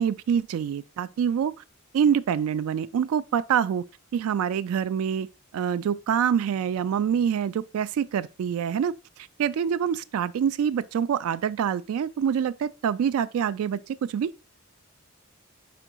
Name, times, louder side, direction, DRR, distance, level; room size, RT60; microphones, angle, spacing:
voice 1, 0.0-1.5 1.9-3.8 4.1-5.3 5.5-8.9 9.4-14.3, right 8 dB, 85° right, 0.3 m, -25 dB
5.0 x 4.5 x 4.4 m
head